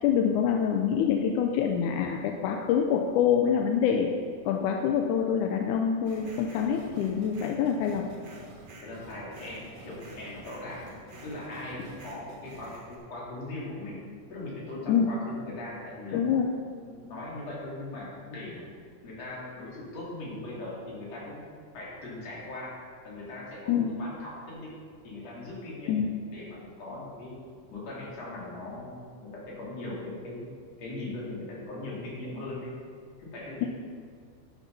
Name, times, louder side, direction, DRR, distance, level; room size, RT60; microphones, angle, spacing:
voice 1, 0.0-4.2 4.5-8.1 14.9-15.1 16.1-16.5 23.7-24.0 25.9-26.1, left 8 dB, 85° left, 2 dB, 2.1 m, -26 dB
sound 1, 6.0-13.0, right 2 dB, 60° right, 2.6 m, -48 dB
voice 2, 8.8-10.9 11.2-14.0 14.3-16.2 16.7-18.7 19.0-21.4 21.7-22.8 23.0-24.7 25.0-26.0 26.3-27.4 27.7-30.5 30.8-32.8 33.2-33.7, left 2 dB, 55° left, -6 dB, 3.9 m, -39 dB
11.5 x 7.3 x 5.4 m, 2.1 s
omnidirectional pair, 3.5 m